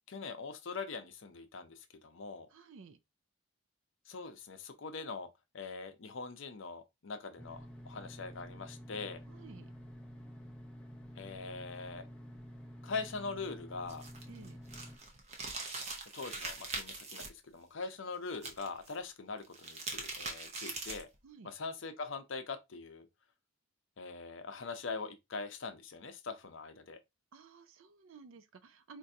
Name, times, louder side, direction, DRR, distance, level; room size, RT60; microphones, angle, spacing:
voice 1, 0.1-2.5 4.1-5.3 5.5-9.2 11.2-12.1 12.8-14.0 16.1-21.1 21.4-23.1 24.0-27.0, left 4 dB, 60° left, 0.6 m, -42 dB
voice 2, 2.5-3.0 9.3-9.7 14.3-14.6 21.2-21.5 27.3-29.0, right 4 dB, 65° right, 0.4 m, -54 dB
sound 1, 7.4-15.0, equal, 5° left, 0.4 m, -50 dB
sound 2, 13.9-17.3 18.3-18.9 19.4-21.1, right 3 dB, 30° right, 0.7 m, -42 dB
4.5 x 2.6 x 2.6 m
head